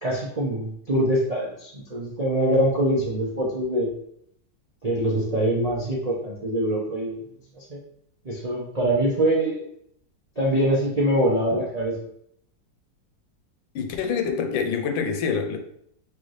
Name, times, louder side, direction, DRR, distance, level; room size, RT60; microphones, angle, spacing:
voice 1, 0.0-3.9 4.8-7.2 7.5-7.8 8.2-9.6 10.4-12.0, right 1 dB, 85° right, 0.3 m, -24 dB
voice 2, 13.7-15.6, left 6 dB, 90° left, 1.3 m, -26 dB
3.3 x 3.2 x 3.9 m
omnidirectional pair, 2.0 m